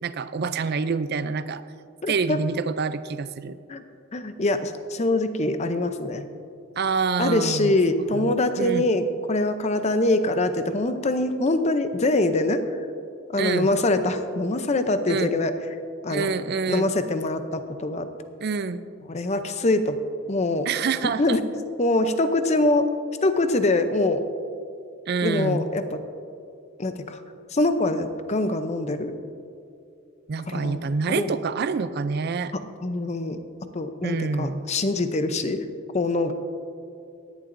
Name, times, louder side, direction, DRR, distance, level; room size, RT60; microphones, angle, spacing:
voice 1, 0.0-1.6 2.1-3.6 6.8-7.8 8.1-8.9 13.4-13.7 15.1-15.3 16.1-16.9 18.4-18.8 20.7-21.4 25.1-25.7 30.3-32.5 34.0-34.7, right 5 dB, 50° right, 13 dB, 0.4 m, -27 dB
voice 2, 2.0-2.4 3.7-3.8 4.1-6.3 7.2-12.6 13.3-15.5 16.0-16.3 16.7-18.1 19.1-20.0 20.3-20.7 21.2-21.4 21.8-22.9 23.2-24.3 25.2-26.0 26.8-27.2 27.5-29.2 30.5-30.8 31.1-31.4 32.5-33.4 33.7-35.6 35.9-36.3, left 2 dB, 30° left, 9 dB, 0.6 m, -24 dB
17.5 x 10.5 x 2.6 m, 2.5 s
head